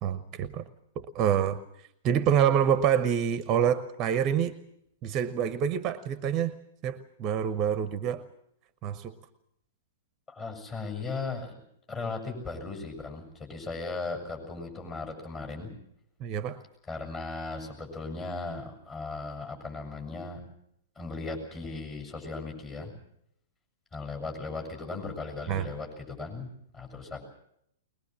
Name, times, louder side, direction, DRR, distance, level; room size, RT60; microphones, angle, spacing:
voice 1, 0.0-0.6 1.0-1.6 2.0-4.5 5.0-6.6 6.8-8.2 8.8-9.1 16.2-16.6 25.5-25.7, right 8 dB, 30° right, 14 dB, 1.0 m, -26 dB
voice 2, 10.3-11.6 11.9-15.7 16.9-20.5 20.9-22.9 23.9-27.2, left 3 dB, 20° left, 2 dB, 6.7 m, -37 dB
22.0 x 21.0 x 7.5 m, 0.73 s
figure-of-eight pair, 105°, 0 cm